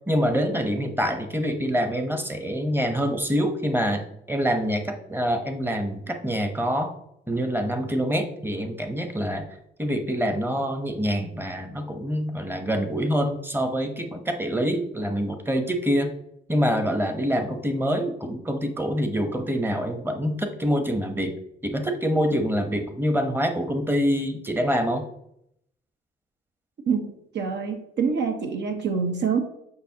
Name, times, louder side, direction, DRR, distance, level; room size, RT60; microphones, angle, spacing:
voice 1, 0.1-6.9 7.3-9.5 9.8-16.1 16.5-21.3 21.6-25.1, equal, 10° right, 6 dB, 0.9 m, -25 dB
voice 2, 27.3-29.4, right 6 dB, 65° right, 5 dB, 1.1 m, -25 dB
6.9 x 5.1 x 2.9 m, 0.76 s
cardioid pair, 90°, 20 cm